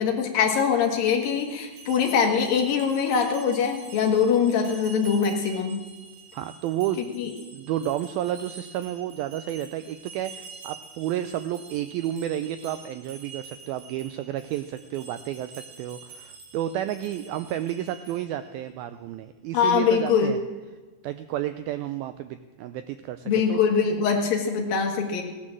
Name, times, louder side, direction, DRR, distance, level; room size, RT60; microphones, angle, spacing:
voice 1, 0.0-5.9 7.0-7.3 19.5-20.4 23.3-25.2, left 6 dB, 60° left, 3 dB, 3.2 m, -23 dB
sound 1, 1.0-18.4, right 5 dB, 65° right, 4.6 m, -47 dB
voice 2, 6.3-7.0 7.5-20.4 21.0-23.6, right 12 dB, 85° right, 11 dB, 2.1 m, -31 dB
17.0 x 10.5 x 7.5 m, 1.3 s
omnidirectional pair, 4.8 m